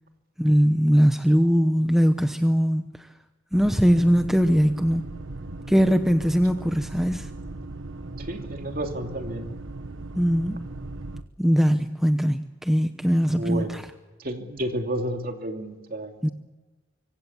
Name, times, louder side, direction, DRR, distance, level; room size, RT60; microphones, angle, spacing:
voice 1, 0.4-2.8 3.5-5.1 5.7-7.3 10.2-10.6 11.4-13.8 16.2-16.3, equal, ahead, 7 dB, 0.9 m, -21 dB
sound 1, 3.5-11.2, right 2 dB, 85° right, 1.2 m, -38 dB
voice 2, 8.2-9.5 13.2-13.8 14.2-16.3, right 1 dB, 50° right, 4 dB, 2.8 m, -31 dB
25.5 x 25.0 x 7.2 m, 1.2 s
head